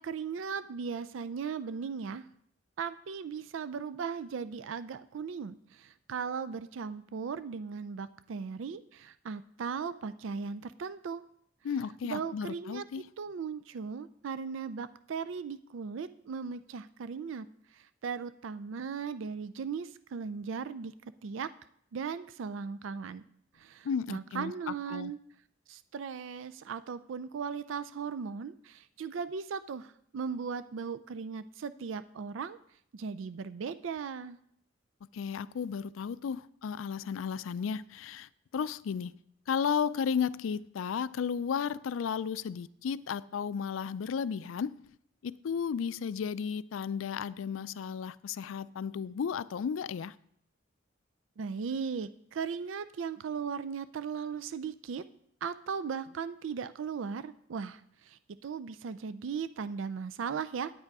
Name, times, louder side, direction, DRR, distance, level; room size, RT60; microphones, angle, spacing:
voice 1, 0.0-2.2 2.8-11.2 12.0-17.5 17.7-20.9 21.2-21.5 21.9-23.2 23.6-25.2 25.7-32.6 32.9-34.4 51.4-55.0 55.4-60.7, right 6 dB, 75° right, 0.4 m, -37 dB
voice 2, 11.6-13.0 23.8-25.1 35.1-39.1 39.5-44.8 45.2-50.1, left 7 dB, 90° left, 0.4 m, -34 dB
9.4 x 8.9 x 4.7 m
head